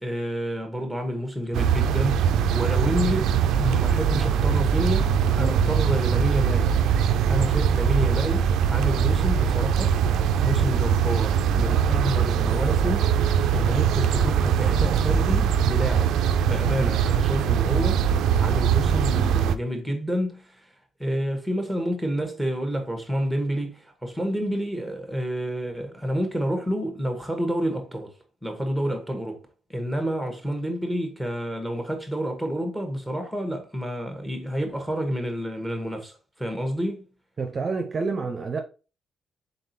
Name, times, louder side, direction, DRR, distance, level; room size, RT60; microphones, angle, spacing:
voice 1, 0.0-6.7 7.3-10.0 10.4-13.1 13.5-16.1 16.4-20.7 21.0-28.1 28.4-29.4 29.7-37.1, equal, ahead, 1.2 m, -29 dB
sound 1, 1.5-19.6, right 8 dB, 85° right, 0.3 m, -22 dB
voice 2, 37.4-38.6, right 4 dB, 40° right, 0.6 m, -28 dB
3.9 x 3.7 x 2.7 m
cardioid pair, 90°, 0 cm